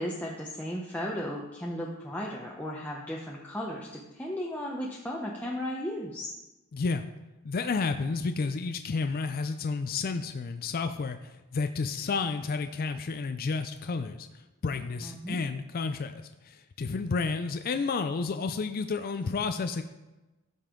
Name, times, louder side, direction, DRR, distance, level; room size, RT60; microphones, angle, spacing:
voice 1, 0.0-6.3 15.0-15.4, equal, 5° left, -3 dB, 0.8 m, -35 dB
voice 2, 6.7-7.0 7.4-14.3 14.6-19.8, left 4 dB, 45° left, 8 dB, 0.4 m, -31 dB
13.5 x 5.4 x 3.8 m, 1.1 s
head